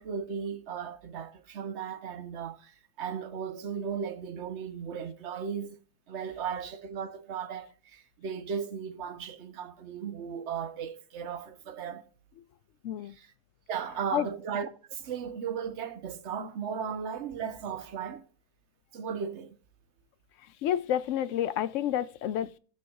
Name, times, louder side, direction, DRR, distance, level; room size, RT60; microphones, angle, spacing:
voice 1, 0.0-5.8 6.1-12.0 13.0-13.3 13.7-18.2 18.9-19.5, right 7 dB, 50° right, 1.0 m, -36 dB
voice 2, 12.8-13.1 14.1-14.3 20.6-22.6, left 11 dB, 70° left, 0.7 m, -29 dB
16.0 x 7.1 x 2.4 m
omnidirectional pair, 1.7 m